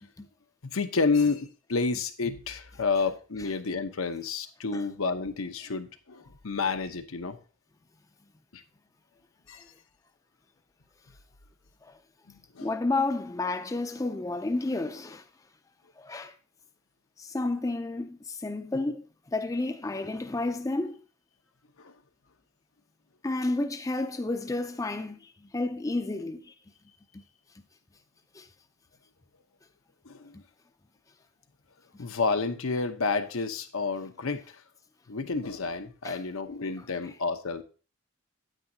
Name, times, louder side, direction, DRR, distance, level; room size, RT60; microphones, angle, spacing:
voice 1, 0.7-7.4 8.5-8.6 9.5-9.6 12.3-12.7 21.8-21.9 30.0-30.4 32.0-34.6 35.1-37.6, left 4 dB, 85° left, 0.9 m, -30 dB
voice 2, 12.6-15.2 16.0-16.3 17.2-19.0 19.3-21.0 23.2-26.5 27.1-27.2 28.3-28.5 36.0-36.2, left 2 dB, 15° left, 0.4 m, -31 dB
9.1 x 8.8 x 2.7 m
head